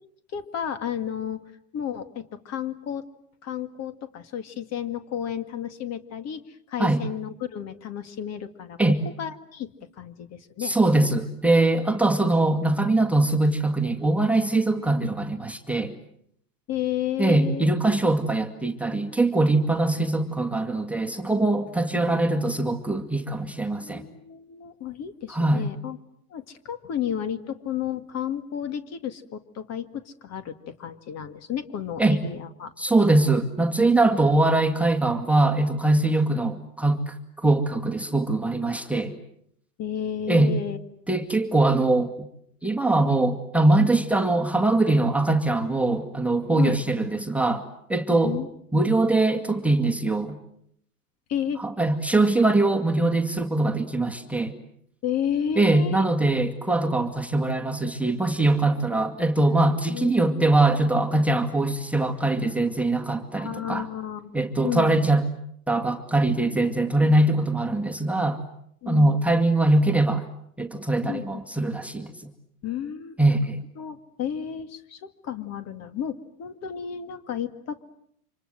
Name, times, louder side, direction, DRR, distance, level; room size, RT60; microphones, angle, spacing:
voice 1, 0.3-1.4 1.7-3.0 3.4-8.8 9.2-10.7 16.7-17.7 22.1-22.2 23.8-26.0 26.3-32.7 39.8-40.8 46.6-46.8 48.2-48.5 51.3-51.6 55.0-56.0 59.9-60.5 63.4-65.1 67.0-67.5 68.8-69.2 71.0-71.4 72.6-73.2 73.8-77.8, left 9 dB, 35° left, 11 dB, 2.3 m, -32 dB
voice 2, 10.6-15.9 17.2-24.0 25.3-25.7 32.0-32.2 32.8-39.1 40.3-40.5 41.1-42.3 42.6-47.6 47.9-48.4 48.7-50.4 51.6-54.5 55.6-63.9 64.3-65.2 65.7-68.4 68.9-70.3 70.6-72.1 73.2-73.6, right 2 dB, 5° right, 3 dB, 2.1 m, -22 dB
29.0 x 26.5 x 7.8 m, 0.71 s
hypercardioid pair, 110°, 46 cm